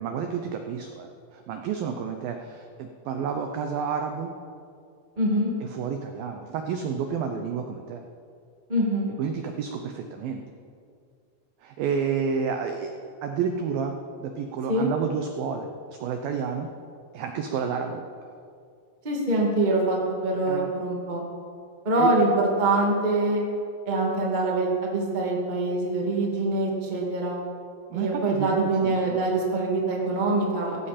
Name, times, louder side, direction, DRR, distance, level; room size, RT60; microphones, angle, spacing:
voice 1, 0.0-4.4 5.6-8.0 9.2-10.4 11.6-13.0 13.2-16.7 17.1-18.0 20.5-20.7 22.0-22.1 27.9-29.0, right 6 dB, 85° right, 5 dB, 2.0 m, -30 dB
voice 2, 5.2-5.5 8.7-9.1 14.7-14.9 19.0-20.0 20.2-21.2 21.8-23.4 23.8-27.4 27.9-30.8, right 2 dB, 25° right, -2 dB, 1.0 m, -24 dB
17.0 x 15.5 x 4.3 m, 2.3 s
omnidirectional pair, 5.2 m